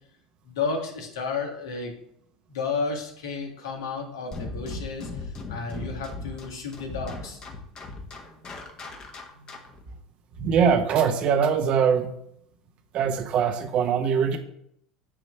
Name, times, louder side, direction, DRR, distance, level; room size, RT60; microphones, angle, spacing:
voice 1, 0.4-1.9 2.5-7.4, left 4 dB, 75° left, 3 dB, 1.6 m, -32 dB
sound 1, 4.3-9.8, left 3 dB, 35° left, 1.4 m, -37 dB
voice 2, 10.4-12.1 12.9-14.4, right 7 dB, 50° right, 7 dB, 1.0 m, -22 dB
8.8 x 3.1 x 5.8 m, 0.73 s
hypercardioid pair, 85°, 2 cm